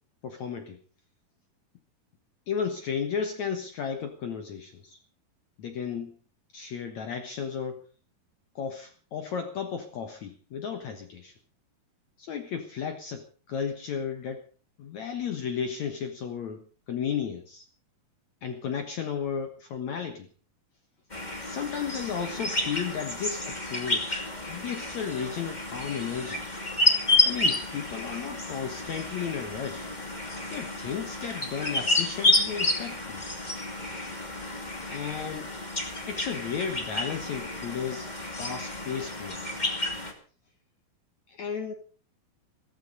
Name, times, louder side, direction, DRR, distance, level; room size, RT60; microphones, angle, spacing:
voice 1, 0.2-0.8 2.5-5.0 5.6-6.2 6.5-7.8 8.6-11.3 12.2-14.4 14.8-17.6 18.4-20.3 21.5-26.5 27.2-29.9 30.5-33.2 34.9-35.5 36.1-39.4 41.3-41.7, left 7 dB, 60° left, 7 dB, 2.2 m, -34 dB
sound 1, 21.1-40.1, left 2 dB, 15° left, 2.1 m, -30 dB
16.0 x 15.0 x 5.4 m, 0.40 s
omnidirectional pair, 4.5 m